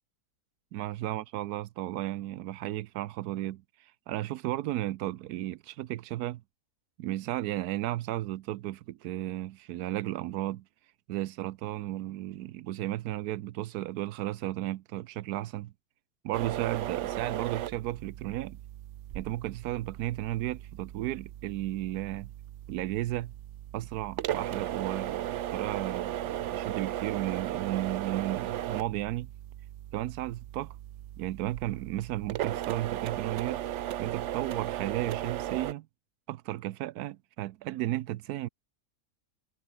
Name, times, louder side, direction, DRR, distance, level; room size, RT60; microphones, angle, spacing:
voice 1, 0.7-6.4 7.0-10.6 11.1-15.7 16.2-18.6 19.1-22.3 22.7-23.3 23.7-29.3 29.9-30.8 31.2-33.6 34.0-35.9 36.3-38.5, right 15 dB, 85° right, 1.1 m, -34 dB
sound 1, 16.3-35.7, right 12 dB, 65° right, 0.8 m, -36 dB
omnidirectional pair, 1.6 m